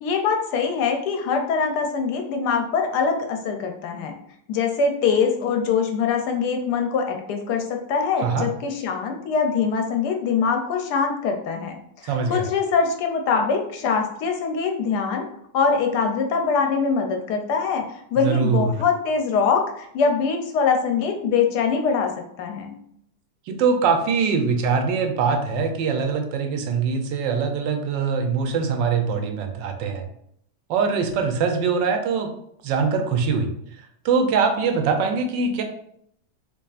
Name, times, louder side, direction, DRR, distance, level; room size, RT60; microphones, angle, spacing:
voice 1, 0.0-4.2 4.5-11.7 12.0-15.3 15.5-22.1 22.4-22.8, left 5 dB, 75° left, 4 dB, 1.1 m, -23 dB
voice 2, 12.1-12.4 18.2-18.8 23.5-30.0 30.7-32.3 32.6-33.5 34.0-35.6, right 5 dB, 90° right, 5 dB, 1.3 m, -22 dB
4.7 x 2.7 x 2.4 m, 0.71 s
omnidirectional pair, 1.9 m